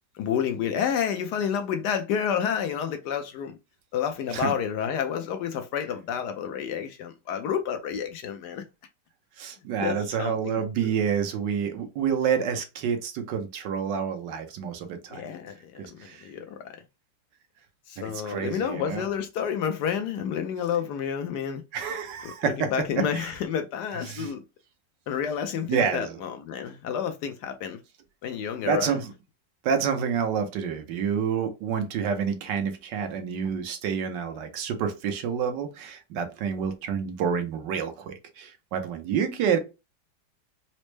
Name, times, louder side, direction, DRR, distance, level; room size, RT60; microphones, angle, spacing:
voice 1, 0.1-3.6 3.9-8.6 9.8-10.9 15.1-16.8 17.9-21.6 22.2-24.4 25.1-27.8 28.2-29.0, left 8 dB, 70° left, 1.0 m, -30 dB
voice 2, 9.4-15.2 15.8-16.3 18.0-19.0 21.7-22.7 23.1-23.3 24.1-24.3 25.7-26.2 28.6-29.1 29.6-39.6, right 7 dB, 75° right, 1.4 m, -28 dB
4.2 x 2.0 x 3.1 m
omnidirectional pair, 2.0 m